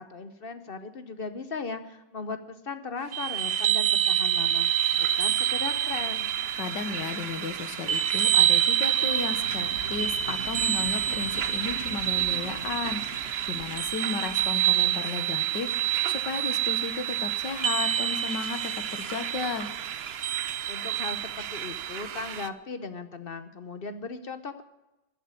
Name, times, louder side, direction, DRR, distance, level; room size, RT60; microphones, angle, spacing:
voice 1, 0.0-4.7 4.9-6.3 20.7-24.6, left 4 dB, 45° left, 10 dB, 0.7 m, -37 dB
sound 1, 3.1-22.5, right 10 dB, 75° right, 0.5 m, -27 dB
voice 2, 6.6-19.7, left 5 dB, 75° left, 10 dB, 1.9 m, -34 dB
sound 2, 8.9-15.0, right 2 dB, 35° right, 1.6 m, -42 dB
14.5 x 8.3 x 9.6 m, 1.0 s
omnidirectional pair, 1.9 m